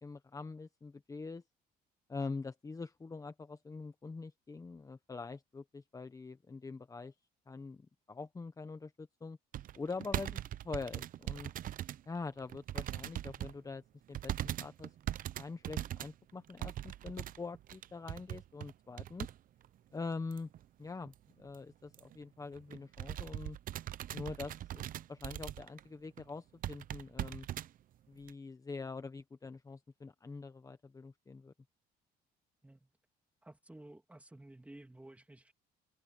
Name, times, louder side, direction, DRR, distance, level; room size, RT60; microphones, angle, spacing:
voice 1, 0.0-1.4 2.1-7.1 7.5-9.4 9.7-11.5 12.1-13.8 14.1-14.9 15.4-19.3 19.9-20.5 20.8-23.6 24.1-27.5 28.1-31.5, left 4 dB, 20° left, 1.1 m, -44 dB
sound 1, 9.5-12.0 12.4-13.6 14.1-19.4 19.6-19.7 20.3-20.6 21.1-21.2 21.4-21.6 21.9-22.2 22.6-25.8 26.2-26.3 26.6-27.7 28.3-28.4, right 12 dB, 55° right, 0.7 m, -40 dB
voice 2, 33.4-35.5, right 1 dB, 10° right, 2.8 m, -54 dB
cardioid pair, 110°, 17 cm